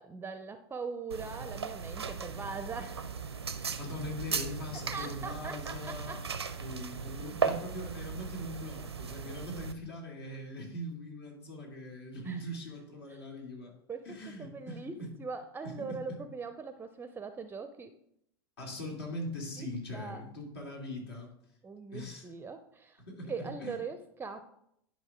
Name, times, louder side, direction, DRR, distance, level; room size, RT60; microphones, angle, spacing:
voice 1, 0.0-3.1 4.9-6.2 12.2-12.4 13.1-13.2 13.9-17.9 19.6-20.2 21.6-23.0 23.3-24.4, right 4 dB, 15° right, 10 dB, 0.5 m, -41 dB
sound 1, 1.1-9.7, right 6 dB, 90° right, 0.6 m, -37 dB
voice 2, 3.8-6.3 6.6-13.7 14.0-15.1 15.6-16.2 18.6-21.3 21.9-22.3 23.0-23.8, left 1 dB, 70° left, -1 dB, 2.6 m, -41 dB
10.5 x 5.2 x 3.6 m, 0.74 s
figure-of-eight pair, 85°, 13 cm